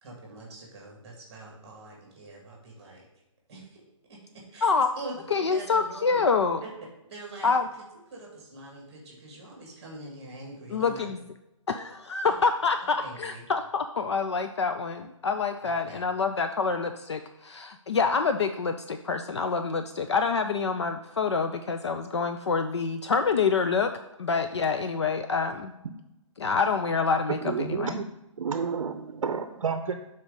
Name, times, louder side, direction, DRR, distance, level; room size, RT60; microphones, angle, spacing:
voice 1, 0.0-3.1 3.5-3.8 4.1-4.2 4.5-6.2 6.6-6.7 7.1-7.8 8.1-11.1 12.3-12.4 13.0-13.5 15.6-16.0, right 2 dB, 15° right, -1 dB, 1.7 m, -44 dB
voice 2, 5.3-6.6 7.4-7.7 10.7-11.2 11.7-23.9 24.2-25.7 26.4-28.0, left 5 dB, 55° left, 7 dB, 0.4 m, -26 dB
voice 3, 27.4-28.0 28.4-30.0, right 5 dB, 70° right, 8 dB, 0.6 m, -30 dB
6.2 x 4.2 x 5.1 m, 0.91 s
hypercardioid pair, 175°, 17 cm